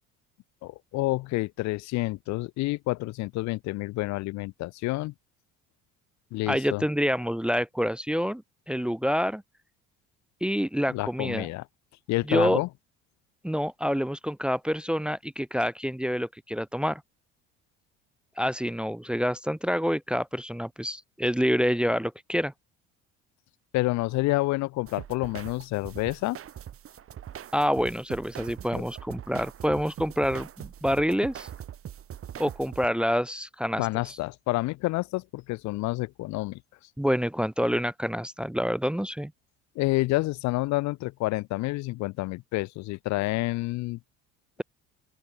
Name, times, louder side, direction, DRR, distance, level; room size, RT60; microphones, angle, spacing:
voice 1, 0.6-5.1 6.3-6.8 10.9-11.6 12.1-12.7 23.7-26.4 28.8-28.9 33.8-36.6 39.7-44.0, left 20 dB, 65° left, 1.1 m, -29 dB
voice 2, 6.5-8.4 8.7-9.4 10.4-11.5 12.3-12.6 13.4-17.0 18.4-22.5 27.5-31.5 32.4-34.2 37.0-39.3, equal, 5° right, 0.8 m, -27 dB
sound 1, 24.9-32.9, right 10 dB, 50° right, 4.4 m, -42 dB
open air
supercardioid pair, 85°, 30 cm